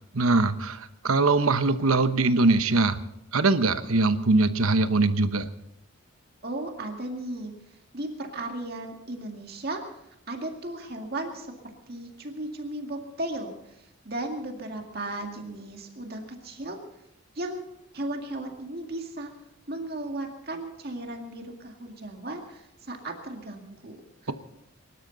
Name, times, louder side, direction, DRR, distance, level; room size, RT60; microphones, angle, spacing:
voice 1, 0.1-3.0 3.3-5.5, right 3 dB, 80° right, 11 dB, 1.0 m, -22 dB
voice 2, 6.4-7.5 7.9-9.8 10.3-11.5 11.9-16.8 17.4-17.6 17.9-19.3 19.7-24.3, right 1 dB, 45° right, 3 dB, 2.1 m, -35 dB
24.0 x 12.5 x 4.0 m, 0.84 s
head